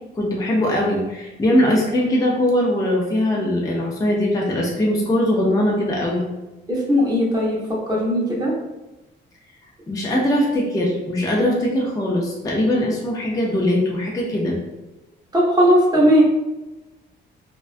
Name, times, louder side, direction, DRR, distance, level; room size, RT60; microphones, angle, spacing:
voice 1, 0.2-6.2 9.9-14.6, left 1 dB, 15° left, -2 dB, 0.5 m, -21 dB
voice 2, 6.7-7.6 7.9-8.5 15.3-16.2, equal, 20° right, -5 dB, 0.8 m, -17 dB
2.3 x 2.2 x 2.4 m, 1.1 s
cardioid pair, 90°, 20 cm